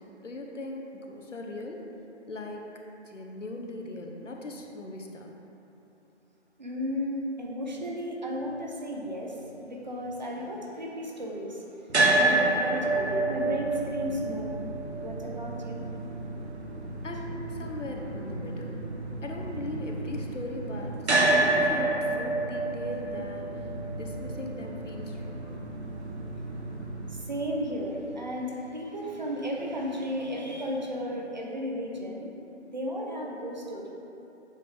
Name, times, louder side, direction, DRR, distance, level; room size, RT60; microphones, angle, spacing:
voice 1, 0.2-1.9 2.3-2.6 3.1-5.3 17.0-18.9 19.2-23.5 24.0-25.7, left 2 dB, 90° left, 1 dB, 0.9 m, -39 dB
voice 2, 6.6-9.4 9.6-11.6 12.1-14.6 14.9-15.8 27.3-32.3 32.7-33.9, equal, 40° right, -2 dB, 0.7 m, -34 dB
sound 1, 11.9-28.0, right 2 dB, 65° right, 1.0 m, -29 dB
7.5 x 3.9 x 3.3 m, 2.9 s
figure-of-eight pair, 160°, 36 cm